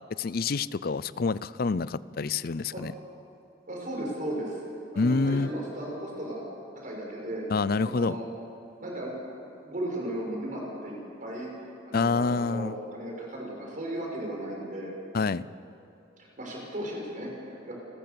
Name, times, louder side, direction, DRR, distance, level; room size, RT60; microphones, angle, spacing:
voice 1, 0.2-2.9 5.0-5.5 7.5-8.2 11.9-12.7 15.1-15.4, left 4 dB, 55° left, 18 dB, 0.5 m, -27 dB
voice 2, 3.7-4.6 4.9-6.4 6.8-7.4 7.8-8.2 8.8-9.1 9.6-11.5 11.9-14.9 16.4-17.7, right 1 dB, 45° right, -2 dB, 6.3 m, -35 dB
29.5 x 14.0 x 7.0 m, 2.9 s
head